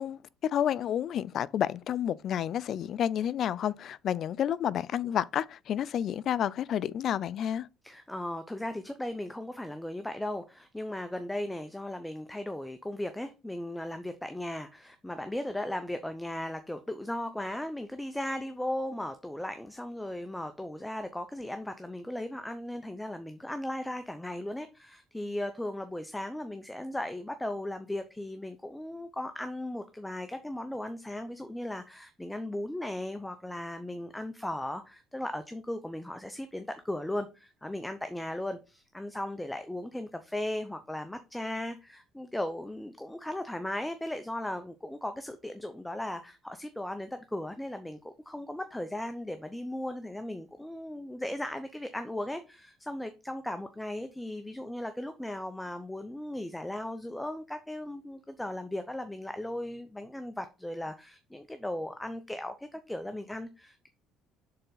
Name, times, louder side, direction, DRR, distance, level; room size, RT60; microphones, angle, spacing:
voice 1, 0.0-7.7, left 10 dB, 50° left, 0.3 m, -30 dB
voice 2, 7.8-63.9, left 1 dB, 5° left, 0.6 m, -37 dB
6.7 x 3.9 x 3.9 m
cardioid pair, 115°, 0 cm